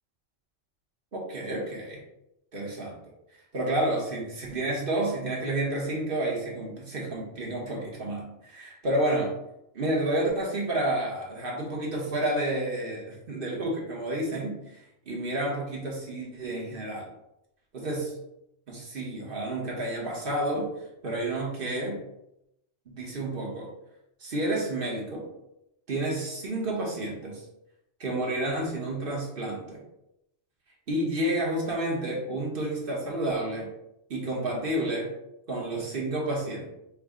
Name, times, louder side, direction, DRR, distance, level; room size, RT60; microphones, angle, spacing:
voice 1, 1.1-2.0 2.5-3.0 3.5-9.4 9.7-17.1 17.7-18.1 18.7-22.0 22.9-23.7 24.2-25.3 25.9-27.4 28.0-29.8 30.9-33.7 34.1-35.1 35.5-36.7, right 1 dB, 50° right, -3 dB, 1.1 m, -30 dB
4.7 x 2.1 x 3.6 m, 0.85 s
omnidirectional pair, 1.2 m